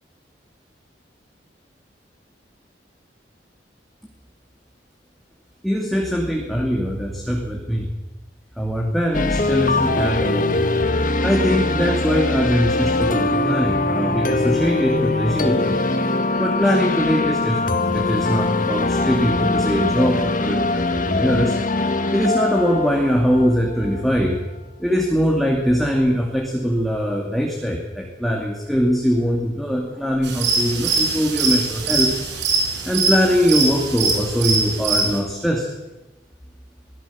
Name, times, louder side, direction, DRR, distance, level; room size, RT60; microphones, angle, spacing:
voice 1, 5.6-7.9 8.6-10.7 11.2-15.8 16.3-21.6 22.1-24.4 24.8-32.1 32.8-35.7, equal, ahead, 0 dB, 2.6 m, -21 dB
sound 1, 9.1-24.0, left 2 dB, 50° left, 1.7 m, -22 dB
sound 2, 30.2-35.2, right 3 dB, 80° right, 5.6 m, -22 dB
23.5 x 16.5 x 7.3 m, 1.1 s
head